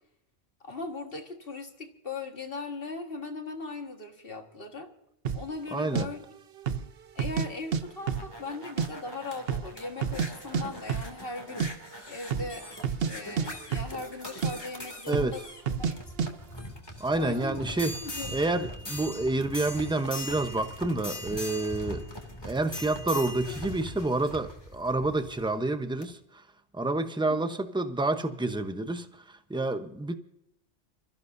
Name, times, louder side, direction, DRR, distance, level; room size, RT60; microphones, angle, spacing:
voice 1, 0.6-4.9 5.3-6.2 7.2-12.7 13.1-16.0 17.2-17.6 18.0-18.4 27.3-27.4, left 3 dB, 55° left, 4 dB, 1.9 m, -39 dB
sound 1, 5.3-5.5 6.0-6.1 6.6-6.9 7.2-7.8 8.1-8.9 9.1-9.2 9.5-10.3 10.5-10.6 10.9-11.1 11.4-11.7 12.2-12.5 12.8-13.1 13.4-14.2 14.4-14.5 15.1-15.4 15.7-15.9 16.2-16.3, right 7 dB, 60° right, 1.0 m, -29 dB
voice 2, 5.7-6.1 15.1-15.3 17.0-18.0 18.3-22.0 22.4-26.4 26.7-30.2, right 2 dB, 5° right, 8 dB, 0.9 m, -29 dB
sound 2, 7.8-25.5 26.0-26.1, left 1 dB, 20° left, 2.6 m, -41 dB
27.5 x 15.0 x 2.7 m, 0.80 s
omnidirectional pair, 1.1 m